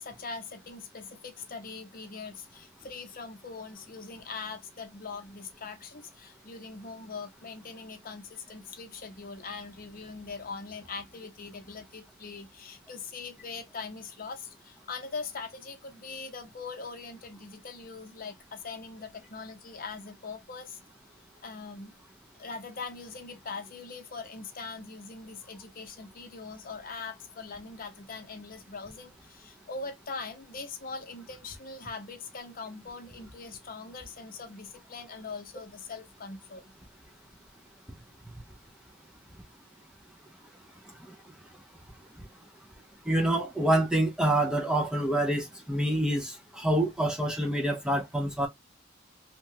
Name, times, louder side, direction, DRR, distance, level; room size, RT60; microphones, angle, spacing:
voice 1, 0.0-20.8 21.4-21.9 22.4-36.7, left 4 dB, 45° left, 0.7 m, -42 dB
voice 2, 43.1-48.5, right 1 dB, 5° right, 0.4 m, -27 dB
2.8 x 2.2 x 2.7 m
head